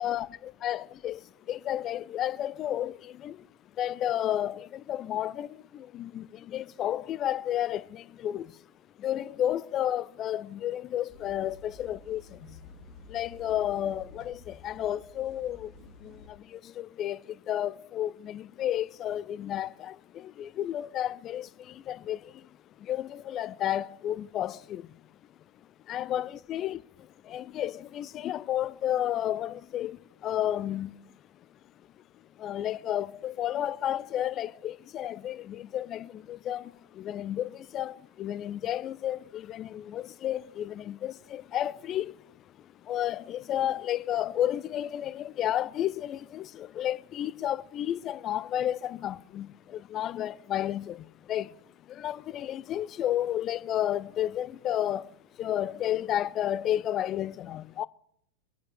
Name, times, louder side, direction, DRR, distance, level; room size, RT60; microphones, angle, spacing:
voice 1, 0.6-3.5 3.7-8.6 9.0-12.6 13.0-22.5 22.8-24.9 25.8-26.8 27.2-31.0 31.3-31.6 32.1-57.9, left 11 dB, 30° left, 0.4 m, -32 dB
sound 1, 11.1-16.3, left 3 dB, 30° right, 2.2 m, -51 dB
24.0 x 9.5 x 3.3 m
figure-of-eight pair, 90°, 0 cm